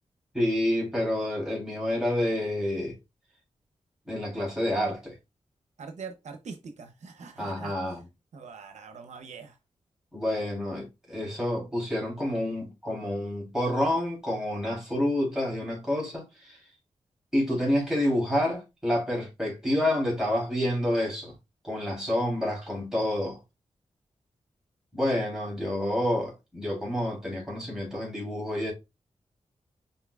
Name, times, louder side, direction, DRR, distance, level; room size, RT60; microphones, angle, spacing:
voice 1, 0.3-2.9 4.1-5.2 7.4-8.0 10.1-16.6 17.3-21.3 21.6-23.4 24.9-28.7, left 1 dB, 5° right, 3.1 m, -28 dB
voice 2, 5.8-7.7 8.3-9.6, right 5 dB, 75° right, 0.7 m, -43 dB
5.7 x 3.9 x 2.3 m
wide cardioid pair, 105°, 12 cm